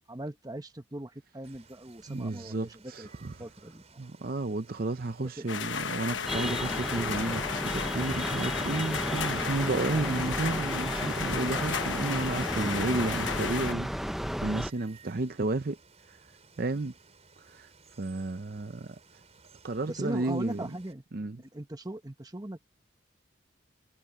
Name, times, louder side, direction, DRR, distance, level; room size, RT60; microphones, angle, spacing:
voice 1, 0.1-3.1 3.4-4.0 5.2-5.5 19.9-21.0 21.5-22.6, right 1 dB, 20° right, 1.2 m, -39 dB
Water, 1.4-20.9, right 5 dB, 35° right, 5.5 m, -58 dB
voice 2, 2.1-3.5 4.0-13.9 14.4-15.8 16.6-16.9 17.4-17.7 18.0-19.0 19.6-20.7 21.1-21.4, right 2 dB, 50° right, 0.7 m, -32 dB
sound 1, 5.5-13.7, left 6 dB, 80° left, 1.1 m, -34 dB
sound 2, 6.3-14.7, equal, ahead, 0.7 m, -33 dB
head